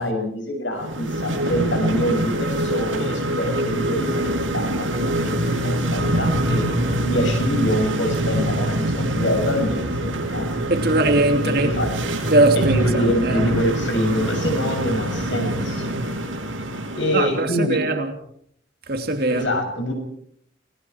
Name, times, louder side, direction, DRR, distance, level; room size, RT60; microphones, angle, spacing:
voice 1, 0.0-6.6 7.0-10.5 11.5-11.9 12.5-15.9 16.9-17.8 19.3-19.9, equal, 70° left, 6.9 m, -25 dB
sound 1, 0.7-17.4, right 1 dB, 85° right, 7.7 m, -24 dB
voice 2, 10.7-11.7 12.3-13.4 17.1-18.1 18.9-19.5, right 2 dB, 50° right, 3.0 m, -20 dB
29.5 x 20.5 x 4.7 m
head